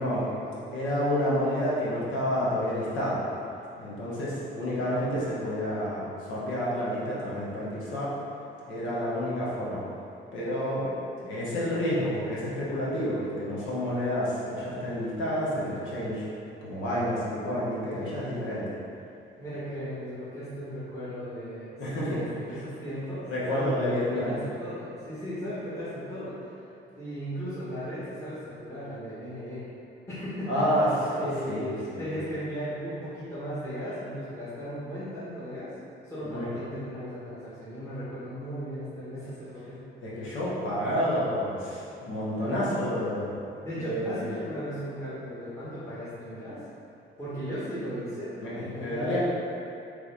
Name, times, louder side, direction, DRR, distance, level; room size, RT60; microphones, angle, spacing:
voice 1, 0.0-0.7 4.9-5.1 7.4-8.0 15.5-15.9 19.4-26.6 27.0-29.6 30.1-30.6 31.1-35.7 36.0-39.8 43.6-46.6 47.2-49.2, equal, 15° left, -13 dB, 1.4 m, -37 dB
voice 2, 0.7-3.2 3.8-8.1 8.6-9.8 10.3-10.9 11.2-16.3 16.6-18.6 21.8-22.2 23.3-24.4 30.5-32.2 36.2-36.5 40.0-43.3 43.7-44.3 48.4-49.2, equal, 80° left, -7 dB, 1.2 m, -29 dB
3.7 x 3.4 x 3.5 m, 2.7 s
cardioid pair, 90°, 20 cm